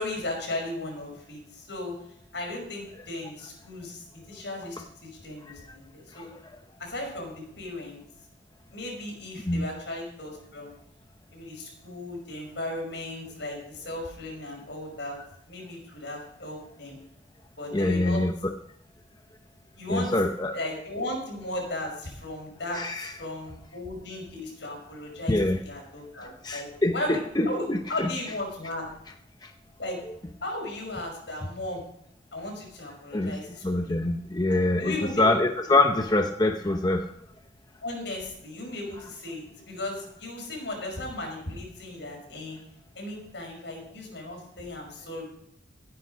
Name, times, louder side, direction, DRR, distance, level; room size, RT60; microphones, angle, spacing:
voice 1, 0.0-1.9 2.3-6.3 6.8-8.0 8.7-10.7 11.3-15.2 15.5-17.0 17.6-18.2 19.8-20.1 20.5-25.4 25.6-27.2 27.5-28.9 29.8-30.0 30.4-31.8 32.3-33.9 34.5-35.4 35.7-35.8 37.8-42.6 42.9-45.2, left 1 dB, 70° left, 0 dB, 5.8 m, -36 dB
voice 2, 17.7-18.5 19.9-20.6 22.7-23.1 25.3-25.6 26.4-28.1 29.4-29.5 33.1-33.4 33.6-37.1, left 2 dB, 20° left, 5 dB, 0.7 m, -25 dB
16.5 x 9.7 x 5.2 m, 0.70 s
head